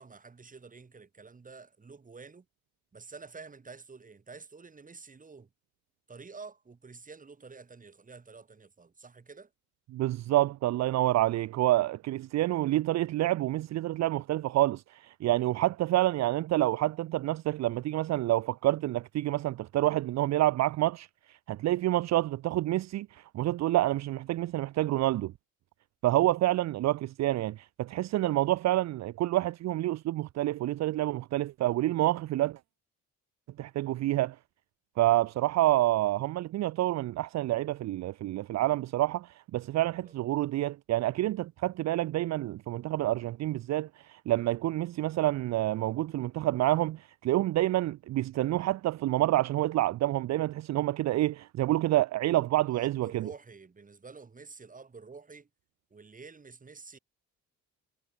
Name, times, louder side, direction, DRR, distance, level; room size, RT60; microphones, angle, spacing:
voice 1, 0.0-2.5 2.9-5.5 6.1-9.5 40.0-40.1 52.6-55.5 55.9-57.0, right 4 dB, 25° right, 2.3 m, -49 dB
voice 2, 9.9-25.3 26.0-32.6 33.6-34.4 35.0-53.3, right 15 dB, 65° right, 0.5 m, -28 dB
cardioid pair, 90°, 30 cm